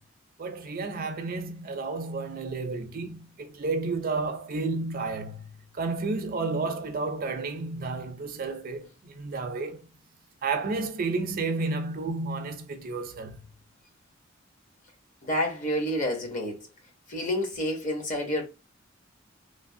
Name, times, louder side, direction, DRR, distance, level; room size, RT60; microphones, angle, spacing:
voice 1, 0.4-9.8 10.4-13.4, right 3 dB, 45° right, 0.5 m, -31 dB
voice 2, 15.2-16.7 17.1-18.4, equal, 40° left, 0.8 m, -29 dB
3.2 x 2.0 x 2.6 m
head